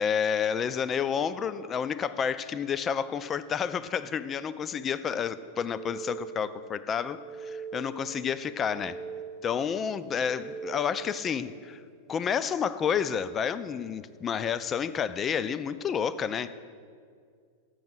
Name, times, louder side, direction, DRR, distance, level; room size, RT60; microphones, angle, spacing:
voice 1, 0.0-9.0 9.4-11.8 12.1-16.6, left 7 dB, 25° left, 14 dB, 0.3 m, -30 dB
sound 1, 5.4-6.5 6.9-8.0 8.4-9.5 9.9-11.1, right 6 dB, 75° left, 1.3 m, -42 dB
6.9 x 6.2 x 7.7 m, 2.1 s
figure-of-eight pair, 90°, 0 cm